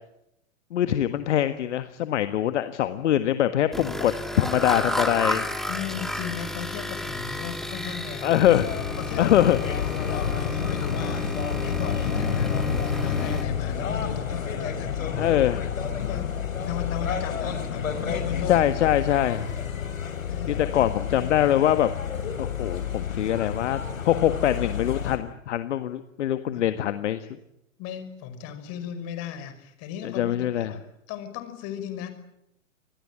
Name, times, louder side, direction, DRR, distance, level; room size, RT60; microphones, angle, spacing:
voice 1, 0.7-5.5 8.2-8.7 9.2-9.6 15.2-15.7 18.5-19.5 20.5-21.9 22.4-27.4 30.2-30.7, left 11 dB, 60° left, 10 dB, 1.6 m, -23 dB
sound 1, 3.7-13.4, left 1 dB, ahead, 2.5 m, -32 dB
voice 2, 5.7-8.4 9.0-15.4 16.0-16.4 16.6-18.7 20.3-20.9 21.2-21.3 26.5-26.6 27.8-30.8 31.1-32.1, left 8 dB, 40° left, 10 dB, 5.5 m, -36 dB
sound 2, 8.4-25.2, left 7 dB, 80° left, 5.5 m, -29 dB
26.0 x 20.0 x 8.9 m, 0.82 s
hypercardioid pair, 115°, 40 cm